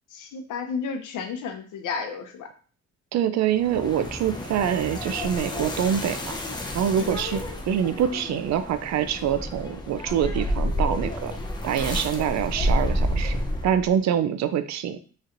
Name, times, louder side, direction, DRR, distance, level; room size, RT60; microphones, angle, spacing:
voice 1, 0.1-2.5 7.0-7.1, left 5 dB, 80° left, 6 dB, 0.7 m, -32 dB
voice 2, 3.1-6.4 6.7-11.3 11.6-13.4 13.6-15.0, right 9 dB, 65° right, 11 dB, 0.5 m, -25 dB
sound 1, 3.5-13.9, left 1 dB, 15° left, 0.7 m, -30 dB
4.1 x 3.1 x 2.6 m, 0.41 s
cardioid pair, 90°, 30 cm